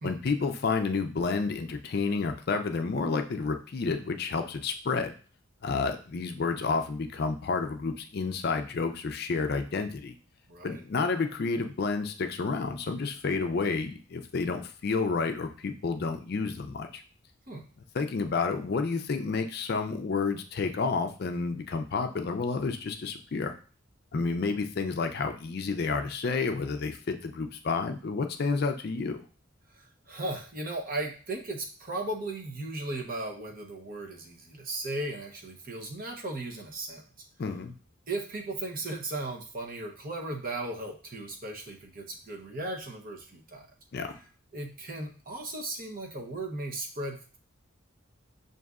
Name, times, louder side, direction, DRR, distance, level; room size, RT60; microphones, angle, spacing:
voice 1, 0.0-5.1 5.6-10.1 10.6-17.0 17.9-23.5 24.1-29.2 37.4-37.7 43.9-44.2, left 4 dB, 50° left, 6 dB, 0.4 m, -30 dB
voice 2, 10.5-10.8 17.5-17.6 29.7-37.0 38.1-43.7 44.5-47.2, right 2 dB, 45° right, 1 dB, 0.8 m, -36 dB
6.4 x 2.6 x 2.4 m, 0.39 s
head